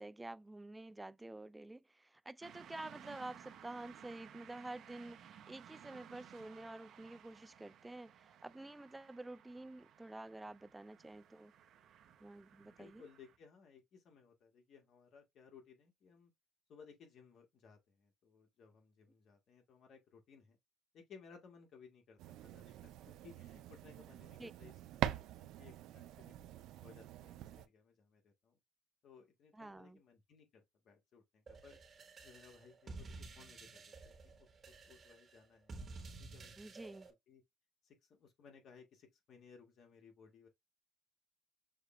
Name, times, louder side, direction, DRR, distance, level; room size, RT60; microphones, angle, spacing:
voice 1, 0.0-11.5 12.2-13.0 24.4-24.5 29.5-30.0 36.6-37.1, right 2 dB, 10° right, 0.3 m, -49 dB
sound 1, 2.4-13.4, right 9 dB, 65° right, 0.9 m, -59 dB
voice 2, 12.6-16.3 16.7-20.6 20.9-26.3 26.8-28.6 29.0-31.8 32.2-37.0 37.3-37.4 37.8-40.5, left 6 dB, 60° left, 1.5 m, -61 dB
sound 2, 22.2-27.7, right 12 dB, 85° right, 0.5 m, -44 dB
sound 3, 31.5-37.1, right 3 dB, 35° right, 1.3 m, -52 dB
6.4 x 2.3 x 3.1 m
cardioid pair, 110°, 0 cm